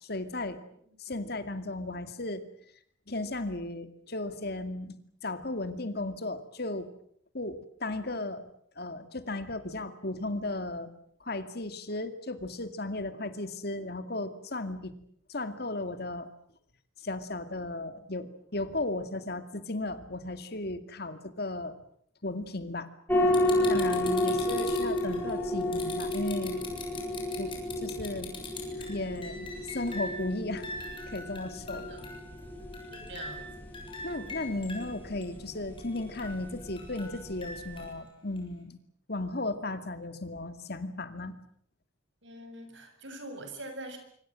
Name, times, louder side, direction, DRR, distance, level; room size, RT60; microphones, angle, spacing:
voice 1, 0.0-0.6 1.0-2.5 3.1-6.9 7.3-8.5 8.8-10.9 11.2-14.9 15.3-16.3 17.0-21.7 22.2-22.9 23.7-26.6 27.4-28.3 28.9-30.7 31.1-31.8 34.0-38.8 39.1-41.4, left 2 dB, 50° left, 10 dB, 2.3 m, -35 dB
sound 1, 23.1-37.9, left 1 dB, 10° left, 5.9 m, -32 dB
sound 2, 23.3-30.2 30.6-32.4 32.7-34.9 35.2-35.3 35.8-38.0 38.4-38.5, left 3 dB, 25° left, 7.0 m, -42 dB
voice 2, 23.8-24.3 31.7-32.0 32.9-33.7 34.4-34.5 42.2-44.0, right 1 dB, 65° right, 7 dB, 6.9 m, -44 dB
25.5 x 25.5 x 7.7 m, 0.66 s
head